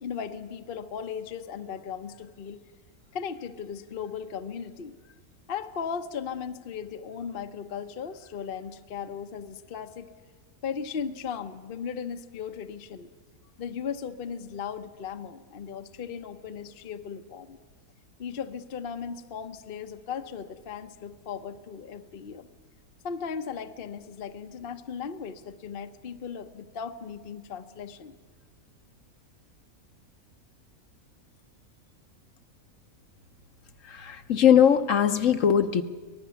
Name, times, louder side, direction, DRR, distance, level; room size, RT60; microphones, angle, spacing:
voice 1, 0.0-2.7 3.1-4.9 5.5-10.1 10.6-13.1 13.6-17.6 18.2-22.5 23.0-28.1, left 7 dB, 45° left, 8 dB, 0.9 m, -37 dB
voice 2, 33.9-35.8, left 8 dB, 65° left, 8 dB, 1.2 m, -20 dB
24.5 x 19.0 x 7.0 m, 1.4 s
omnidirectional pair, 1.5 m